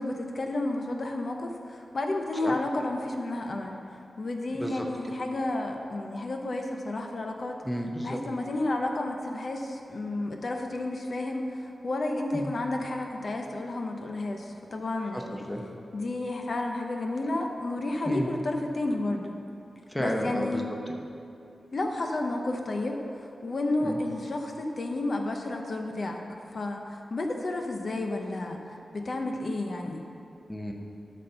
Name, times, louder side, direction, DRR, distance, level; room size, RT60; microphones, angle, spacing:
voice 1, 0.0-3.7 4.2-7.6 8.0-15.4 15.9-19.4 20.0-20.8 21.7-26.2 26.5-30.0, left 2 dB, 50° left, 2 dB, 0.7 m, -31 dB
voice 2, 7.6-8.2 12.3-12.5 15.1-15.2 15.5-15.7 18.1-18.3 19.9-20.6 23.8-24.0 30.5-30.7, equal, 5° left, 1 dB, 0.8 m, -31 dB
11.5 x 4.3 x 6.7 m, 2.7 s
wide cardioid pair, 145°, 0 cm